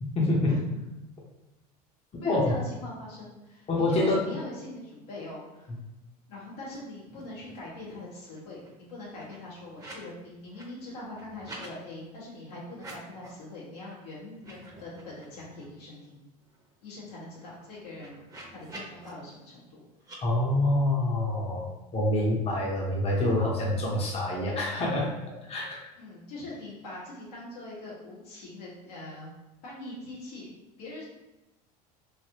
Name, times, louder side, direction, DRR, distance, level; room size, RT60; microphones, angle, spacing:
voice 1, 0.0-0.5 2.2-2.4 3.7-4.2 20.2-25.2 25.5-25.8, left 1 dB, 30° left, -3 dB, 0.8 m, -26 dB
voice 2, 2.2-5.7 6.3-16.2 16.8-18.2 18.5-19.8 26.0-29.3 29.6-31.1, left 2 dB, 85° left, -6 dB, 1.4 m, -42 dB
sound 1, 6.6-6.8 7.0-7.7 8.0-10.1 10.4-11.7 12.7-13.4 13.8-14.0 14.3-15.7 16.1-16.2 16.4-19.1 20.0-20.2, right 2 dB, 20° right, 0.9 m, -49 dB
3.2 x 2.6 x 2.8 m, 1.0 s
supercardioid pair, 90°, 20 cm